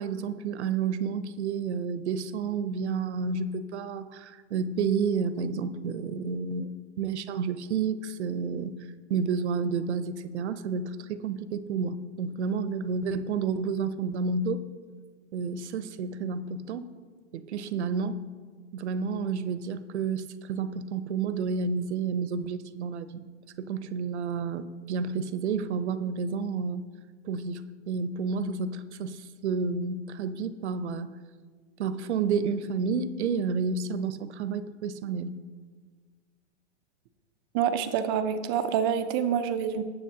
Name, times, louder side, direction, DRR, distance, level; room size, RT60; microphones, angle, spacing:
voice 1, 0.0-6.7 7.0-8.8 9.1-14.6 15.3-16.9 17.3-18.2 18.7-23.1 23.6-26.9 27.2-31.1 31.8-35.4, right 5 dB, 75° right, 13 dB, 0.8 m, -30 dB
voice 2, 37.5-39.8, right 8 dB, 20° right, 9 dB, 0.4 m, -27 dB
19.0 x 7.1 x 2.8 m, 1.5 s
hypercardioid pair, 155°, 34 cm